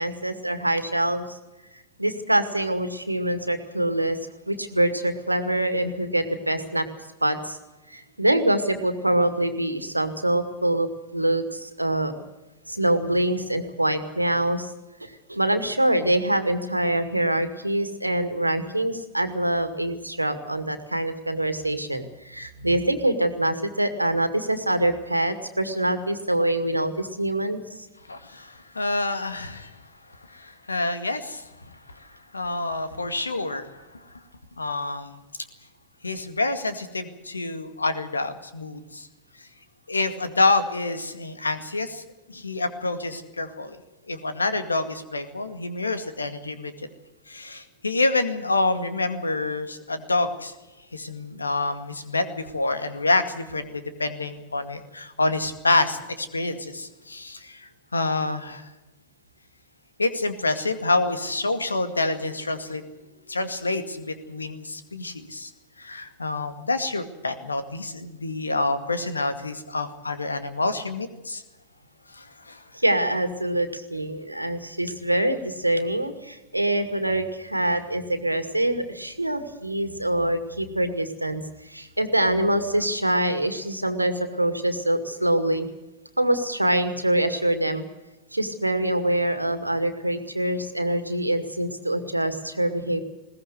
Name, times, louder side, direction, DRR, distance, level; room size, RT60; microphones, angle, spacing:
voice 1, 0.0-1.4 2.0-4.2 4.5-6.9 7.2-7.6 7.9-12.1 12.7-14.7 15.0-27.6 72.7-85.7 86.2-87.8 88.3-93.0, right 1 dB, 85° right, 9 dB, 2.2 m, -25 dB
voice 2, 28.1-29.8 30.3-31.7 32.3-33.8 34.6-35.2 36.0-39.1 39.9-42.0 42.3-43.8 44.1-46.7 47.3-50.5 50.9-58.7 60.0-62.8 63.3-65.5 65.8-71.4 72.1-72.6, left 2 dB, 80° left, 10 dB, 2.1 m, -27 dB
21.0 x 18.0 x 8.0 m, 1.0 s
figure-of-eight pair, 90°, 0 cm